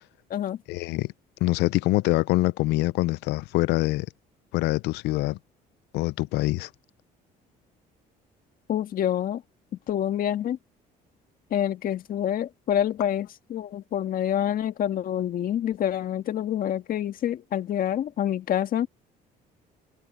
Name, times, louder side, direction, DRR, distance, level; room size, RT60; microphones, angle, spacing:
voice 1, 0.7-1.1 1.4-4.1 4.5-5.4 5.9-6.7, left 19 dB, 85° left, 0.5 m, -24 dB
voice 2, 8.7-9.4 9.9-10.6 11.5-18.9, left 10 dB, 55° left, 1.7 m, -27 dB
cardioid pair, 110°, 17 cm